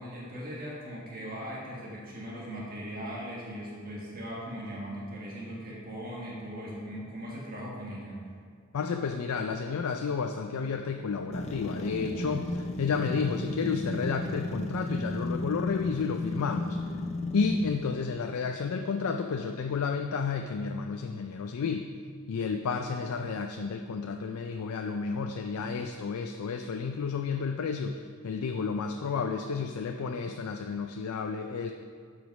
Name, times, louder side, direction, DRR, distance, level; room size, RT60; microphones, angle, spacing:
voice 1, 0.0-8.2, equal, 45° right, -5 dB, 1.5 m, -39 dB
voice 2, 8.7-16.8 17.3-21.9 22.3-27.9 28.2-31.7, left 5 dB, 85° left, 5 dB, 0.4 m, -31 dB
sound 1, 11.3-18.1, left 2 dB, 30° left, 0.5 m, -34 dB
7.7 x 5.1 x 5.3 m, 2.1 s
head